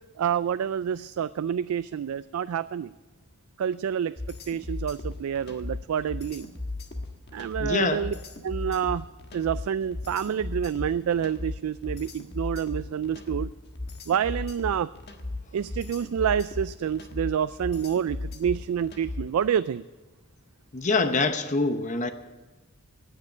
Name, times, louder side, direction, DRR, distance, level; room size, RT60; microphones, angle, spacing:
voice 1, 0.2-2.9 3.6-6.5 7.3-8.1 8.4-9.0 9.3-13.5 14.1-14.9 15.5-19.8, right 8 dB, 85° right, 14 dB, 0.3 m, -28 dB
sound 1, 4.2-19.4, left 2 dB, 50° left, 1.4 m, -36 dB
voice 2, 7.6-8.0 20.7-22.1, left 3 dB, 35° left, 8 dB, 0.8 m, -25 dB
18.0 x 6.6 x 8.4 m, 1.2 s
head